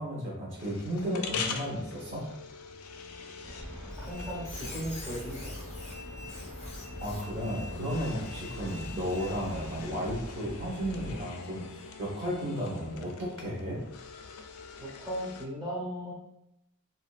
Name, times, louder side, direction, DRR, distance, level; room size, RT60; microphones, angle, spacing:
voice 1, 0.0-2.3 7.0-13.8, equal, 55° right, -6 dB, 1.0 m, -34 dB
sound 1, 0.6-15.5, left 5 dB, 70° left, 0.3 m, -43 dB
Train, 3.4-11.2, equal, 85° right, 0.9 m, -43 dB
Squeak, 3.9-9.9, left 3 dB, 30° left, 0.6 m, -47 dB
voice 2, 4.0-5.5 14.8-16.1, equal, 15° right, -6 dB, 0.6 m, -37 dB
2.7 x 2.4 x 2.3 m, 0.83 s
head